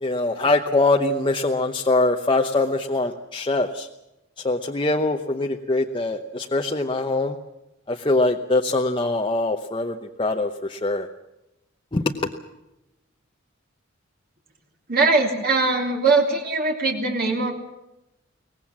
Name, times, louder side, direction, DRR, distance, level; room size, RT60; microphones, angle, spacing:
voice 1, 0.0-3.9 4.4-7.4 7.9-11.1 11.9-12.3, left 2 dB, 25° left, 3 dB, 0.9 m, -23 dB
voice 2, 14.9-17.5, right 3 dB, 50° right, 1 dB, 3.1 m, -21 dB
23.5 x 19.0 x 7.4 m, 0.92 s
head